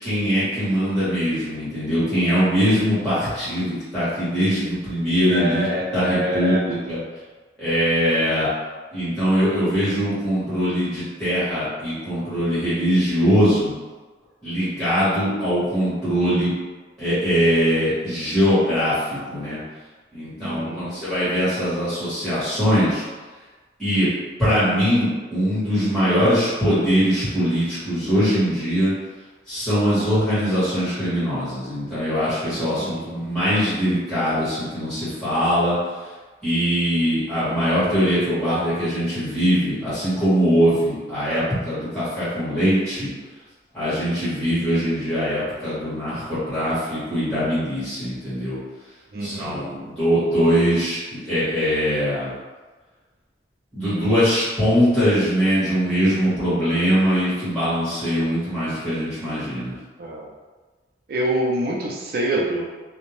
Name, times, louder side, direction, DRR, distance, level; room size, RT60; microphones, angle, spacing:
voice 1, 0.0-5.6 5.9-7.0 7.6-8.5 8.9-13.7 14.4-16.5 17.0-18.9 19.3-19.6 20.1-23.0 23.8-24.1 24.4-28.9 29.5-35.8 36.4-43.1 43.7-48.6 49.2-52.3 53.7-59.7, equal, 5° left, -15 dB, 1.2 m, -22 dB
voice 2, 5.3-6.6 20.4-20.9 32.5-33.2 49.1-49.7 60.0-60.3 61.1-62.6, right 1 dB, 55° right, -1 dB, 0.4 m, -26 dB
2.6 x 2.1 x 3.1 m, 1.3 s
head